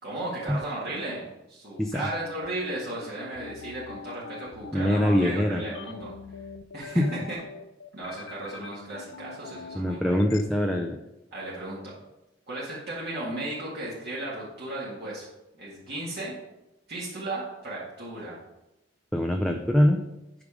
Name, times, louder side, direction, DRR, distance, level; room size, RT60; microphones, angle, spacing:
voice 1, 0.0-6.1 6.7-7.4 7.9-10.2 11.3-11.8 12.5-15.3 15.5-16.3 16.9-18.4, right 1 dB, 60° right, -7 dB, 2.0 m, -35 dB
sound 1, 2.0-10.4, left 5 dB, 75° left, 0.5 m, -43 dB
voice 2, 4.7-5.6 7.0-7.1 9.7-11.0 19.1-20.0, left 1 dB, 5° left, 2 dB, 0.5 m, -23 dB
8.6 x 5.1 x 4.8 m, 0.95 s
head